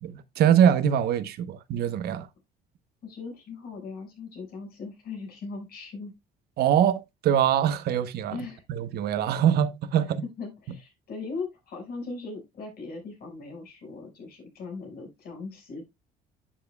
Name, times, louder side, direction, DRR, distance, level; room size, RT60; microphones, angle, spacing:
voice 1, 0.0-2.3 6.6-8.4 8.7-10.2, right 9 dB, 70° right, 1.0 m, -23 dB
voice 2, 3.0-6.1 8.3-8.6 10.4-15.9, left 4 dB, 65° left, 5.4 m, -39 dB
11.0 x 7.5 x 2.3 m
cardioid pair, 110°, 17 cm